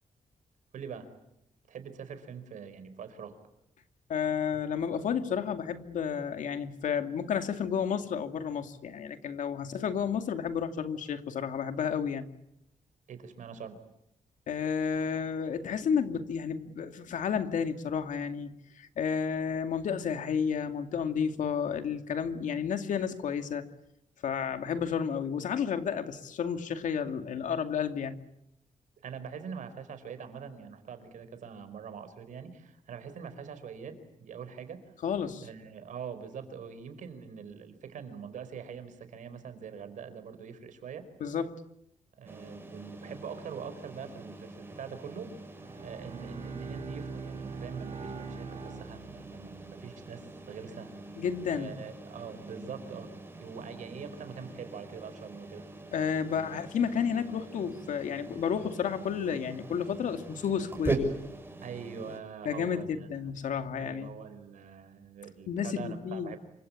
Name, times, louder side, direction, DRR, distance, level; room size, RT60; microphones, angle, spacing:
voice 1, 0.7-1.1 1.7-3.4 13.1-13.8 29.0-34.9 35.4-41.1 42.2-45.4 45.8-51.1 51.5-53.1 53.4-55.7 61.6-63.1 63.8-66.4, right 6 dB, 80° right, 10 dB, 4.8 m, -43 dB
voice 2, 4.1-12.3 14.5-23.6 24.2-28.2 35.0-35.5 41.2-41.6 51.2-51.7 55.9-61.0 62.4-64.1 65.5-66.4, left 7 dB, 80° left, 8 dB, 2.4 m, -31 dB
sound 1, 42.3-62.2, right 2 dB, 15° right, 6.7 m, -42 dB
Bowed string instrument, 45.5-49.6, right 5 dB, 50° right, 3.8 m, -42 dB
27.5 x 25.0 x 8.5 m, 0.78 s
cardioid pair, 120°, 13 cm